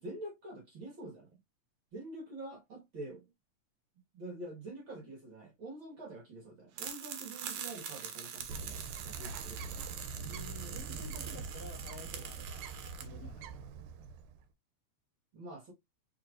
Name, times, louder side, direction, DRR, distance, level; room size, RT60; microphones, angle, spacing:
voice 1, 0.0-1.4 1.9-3.3 4.1-10.0 15.3-15.7, right 2 dB, 45° right, 2.1 m, -46 dB
sound 1, 6.8-13.0, right 8 dB, 70° right, 1.8 m, -44 dB
Bird, 8.5-14.4, right 5 dB, 85° right, 2.0 m, -44 dB
voice 2, 10.2-13.7, left 3 dB, 50° left, 1.8 m, -52 dB
4.6 x 4.5 x 2.5 m
omnidirectional pair, 3.4 m